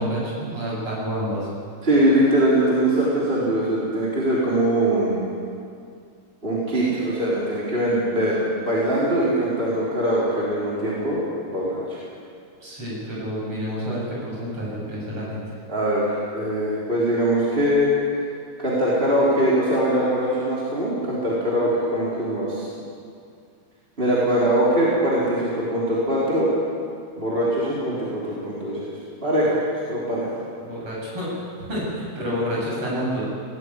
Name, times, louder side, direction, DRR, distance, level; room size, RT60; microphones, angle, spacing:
voice 1, 0.0-1.5 12.6-15.4 30.6-33.3, equal, 30° right, -5 dB, 8.6 m, -29 dB
voice 2, 1.8-5.2 6.4-11.2 11.5-12.0 15.7-17.9 18.6-22.7 24.0-26.5 27.2-29.6 29.9-30.3, right 1 dB, 15° right, -7 dB, 3.6 m, -22 dB
18.5 x 15.0 x 9.9 m, 2.3 s
omnidirectional pair, 4.7 m